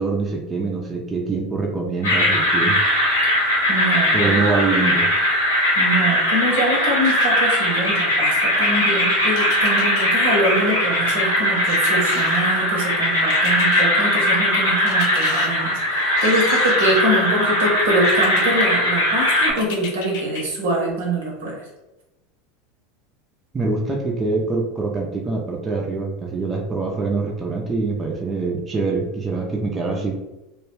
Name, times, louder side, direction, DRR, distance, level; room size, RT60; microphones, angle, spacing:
voice 1, 0.0-2.8 4.1-5.1 23.5-30.1, right 3 dB, 25° right, -1 dB, 0.5 m, -24 dB
sound 1, 2.0-19.5, equal, 85° left, 1.0 m, -19 dB
voice 2, 3.7-4.4 5.7-21.7, right 1 dB, 70° right, -1 dB, 0.8 m, -24 dB
sound 2, 7.0-7.8 9.3-10.1 11.6-12.6 13.3-13.9 14.9-15.5 16.2-17.1 18.0-18.4 19.6-20.4 20.9-21.0, left 5 dB, 60° left, 0.4 m, -32 dB
2.3 x 2.2 x 3.2 m, 0.98 s
figure-of-eight pair, 80°, 0 cm